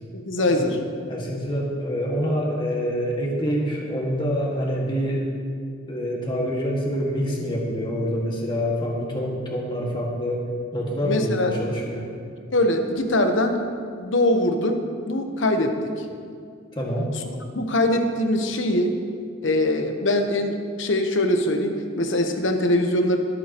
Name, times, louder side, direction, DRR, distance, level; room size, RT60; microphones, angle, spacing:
voice 1, 0.1-0.8 11.0-11.5 12.5-13.6 14.0-15.8 17.5-19.0 19.4-23.2, left 1 dB, 60° left, 5 dB, 1.0 m, -22 dB
voice 2, 1.1-5.3 5.9-10.5 10.7-12.0 16.8-17.1, equal, 25° left, -3 dB, 1.9 m, -26 dB
23.0 x 8.2 x 3.0 m, 2.3 s
head